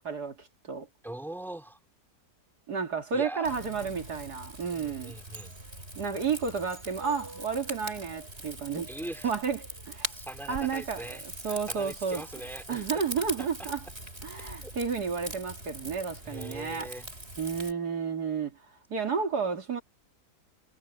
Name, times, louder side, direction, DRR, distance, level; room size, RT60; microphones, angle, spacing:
voice 1, 0.0-0.9 2.7-5.2 5.9-8.9 9.2-9.6 9.9-10.1 10.5-11.1 11.4-12.2 12.7-13.8 14.2-16.9 17.4-18.6 18.9-19.8, right 5 dB, 70° right, 2.8 m, -31 dB
voice 2, 1.0-1.8 3.1-3.5 4.7-5.6 8.9-9.3 10.1-13.0 13.4-13.7 14.6-14.7 16.2-17.1, right 1 dB, ahead, 2.9 m, -42 dB
Rain / Fire, 3.4-17.7, right 1 dB, 35° right, 7.7 m, -42 dB
omnidirectional pair, 1.8 m